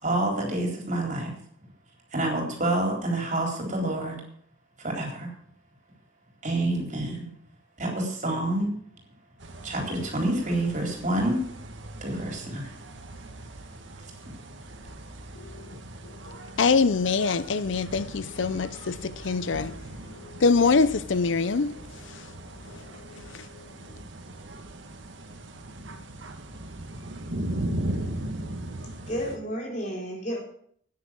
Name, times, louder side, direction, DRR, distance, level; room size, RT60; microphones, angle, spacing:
voice 1, 0.0-1.3 2.1-4.2 4.8-5.3 6.4-7.3 7.8-8.7 9.6-11.4 12.0-12.7, right 1 dB, 40° right, 4.1 m, -28 dB
sound 1, 9.4-29.4, right 1 dB, 90° right, 1.7 m, -38 dB
voice 2, 16.6-19.7 20.4-21.7, left 4 dB, 90° left, 0.6 m, -23 dB
voice 3, 29.1-30.4, equal, 40° left, 4.0 m, -31 dB
10.0 x 9.8 x 7.6 m
head